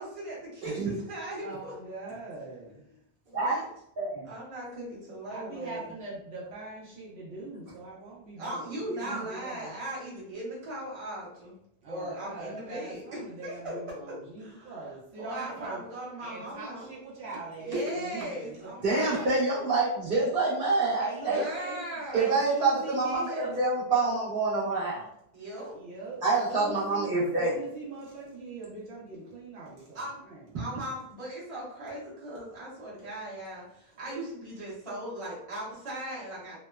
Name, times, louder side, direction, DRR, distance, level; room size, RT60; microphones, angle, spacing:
voice 1, 0.0-1.7 3.3-3.7 4.2-5.8 8.4-11.5 11.9-13.8 14.4-14.8 15.2-16.9 17.7-19.4 21.3-22.4 25.3-25.7 29.9-30.2 30.5-36.6, right 1 dB, 35° right, -7 dB, 0.9 m, -38 dB
voice 2, 1.4-2.8 5.3-9.8 11.8-15.8 16.2-19.3 21.0-21.8 22.1-23.6 25.7-26.2 26.5-30.6, right 3 dB, 80° right, -5 dB, 1.0 m, -41 dB
voice 3, 8.9-9.2 18.8-21.4 22.1-25.1 26.2-27.5, right 3 dB, 60° right, -6 dB, 1.2 m, -27 dB
2.9 x 2.1 x 2.2 m, 0.75 s
omnidirectional pair, 1.1 m